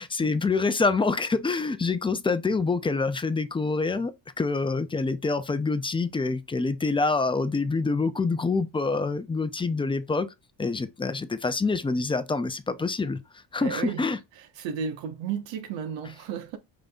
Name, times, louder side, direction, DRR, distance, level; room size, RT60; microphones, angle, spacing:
voice 1, 0.0-4.1 4.4-10.3 10.6-13.2 13.5-14.2, left 3 dB, 10° left, 0.5 m, -26 dB
voice 2, 13.6-14.1 14.6-16.6, right 7 dB, 75° right, 1.3 m, -33 dB
5.2 x 3.9 x 2.4 m
cardioid pair, 130°, 44 cm